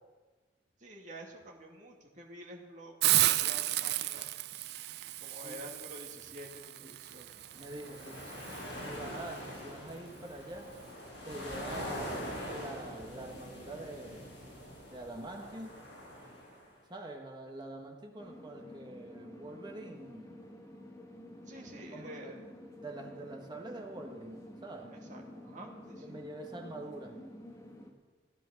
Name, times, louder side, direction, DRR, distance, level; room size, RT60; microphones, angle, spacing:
voice 1, 0.8-4.3 5.2-7.4 7.9-8.5 21.5-22.5 24.9-26.2, equal, 40° right, 0 dB, 2.2 m, -49 dB
Hiss, 3.0-8.6, right 15 dB, 55° right, 0.3 m, -33 dB
voice 2, 5.3-5.7 7.5-8.2 8.7-10.7 11.2-12.2 12.5-14.3 14.9-15.8 16.9-20.5 21.6-22.4 22.8-24.9 26.0-27.2, right 1 dB, 20° right, 1 dB, 1.5 m, -45 dB
sound 1, 7.5-16.7, equal, 65° left, 6.3 m, -44 dB
sound 2, 18.2-27.9, left 1 dB, 15° left, 1.5 m, -50 dB
16.0 x 10.0 x 6.5 m, 1.3 s
head